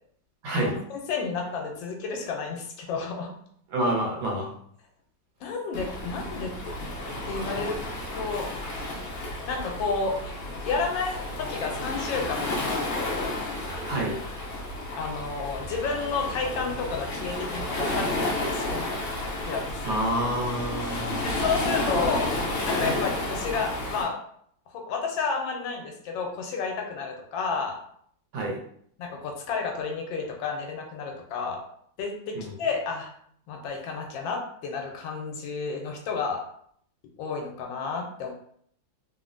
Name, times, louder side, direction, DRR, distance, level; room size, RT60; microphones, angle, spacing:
voice 1, 0.4-0.7 3.7-4.5 13.9-14.2 19.8-21.4 28.3-28.6 32.3-32.5, right 1 dB, 80° right, -2 dB, 1.6 m, -28 dB
voice 2, 1.1-3.3 5.4-6.5 7.2-7.8 8.1-8.5 9.5-10.2 10.6-13.3 15.0-18.9 19.4-19.9 21.2-22.3 22.6-24.2 24.7-27.8 29.0-31.6 32.0-33.1 33.5-36.4 37.2-38.3, left 4 dB, 80° left, 2 dB, 1.3 m, -31 dB
Waves surf, 5.7-24.0, left 2 dB, 60° left, 0.8 m, -31 dB
3.5 x 2.1 x 2.5 m, 0.65 s
omnidirectional pair, 2.1 m